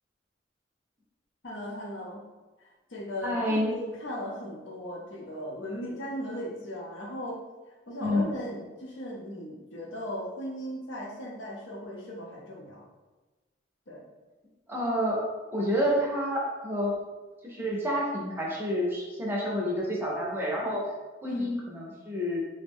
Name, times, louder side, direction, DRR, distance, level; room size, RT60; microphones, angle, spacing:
voice 1, 1.4-2.2 2.6-7.4 7.9-12.8 13.9-14.0 21.2-21.5, equal, 80° left, -2 dB, 0.7 m, -37 dB
voice 2, 3.2-3.7 8.0-8.2 14.7-15.2 15.5-16.9 17.4-20.9 21.2-22.4, equal, 10° right, -3 dB, 0.5 m, -29 dB
3.4 x 2.1 x 3.4 m, 1.2 s
head